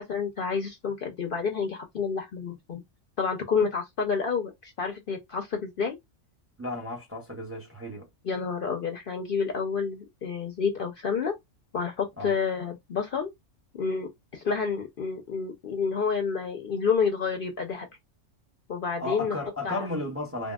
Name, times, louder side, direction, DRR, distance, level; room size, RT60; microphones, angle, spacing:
voice 1, 0.0-2.8 3.2-6.0 8.2-11.3 11.7-13.3 13.7-17.9 18.7-19.4 19.6-19.9, left 5 dB, 60° left, 0.6 m, -29 dB
voice 2, 6.6-8.1 12.2-12.3 19.0-20.5, left 2 dB, 15° right, 0.6 m, -34 dB
3.5 x 2.2 x 2.3 m
omnidirectional pair, 1.3 m